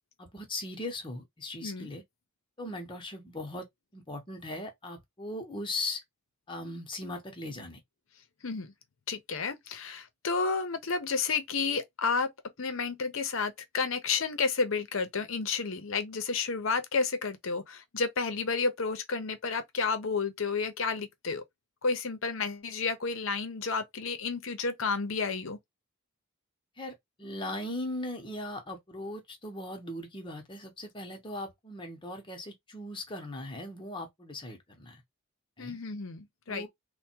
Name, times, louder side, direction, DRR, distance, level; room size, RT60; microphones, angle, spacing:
voice 1, 0.2-2.0 2.6-3.6 3.9-6.0 6.5-7.8 26.8-35.0 35.6-35.8 36.5-36.7, left 1 dB, 20° left, 0.9 m, -39 dB
voice 2, 9.1-12.3 12.6-21.4 21.8-25.6 35.6-36.7, left 4 dB, 65° left, 0.7 m, -31 dB
3.4 x 2.2 x 4.3 m
head